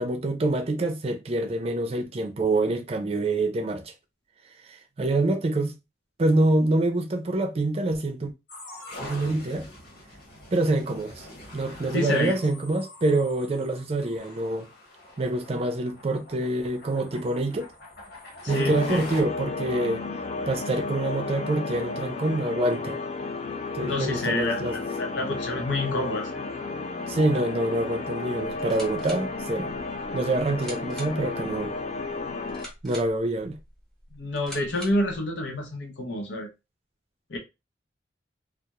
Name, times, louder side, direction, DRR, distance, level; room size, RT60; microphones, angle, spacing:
voice 1, 0.0-3.9 4.6-5.8 6.2-8.3 9.0-9.7 10.5-11.3 11.5-14.7 15.2-17.7 18.5-20.0 20.5-23.0 23.7-24.8 27.1-29.7 30.1-31.7 32.8-33.6, right 2 dB, 35° right, 0.4 m, -26 dB
sound 1, 8.5-19.2, left 2 dB, 60° left, 1.2 m, -44 dB
voice 2, 11.9-12.3 18.4-19.0 23.8-26.3 34.1-36.5 37.3-37.4, left 1 dB, 80° left, 0.6 m, -28 dB
sound 2, 18.5-32.7, left 3 dB, 35° left, 0.3 m, -33 dB
sound 3, 28.4-35.2, equal, 5° left, 0.8 m, -45 dB
2.2 x 2.0 x 2.8 m
head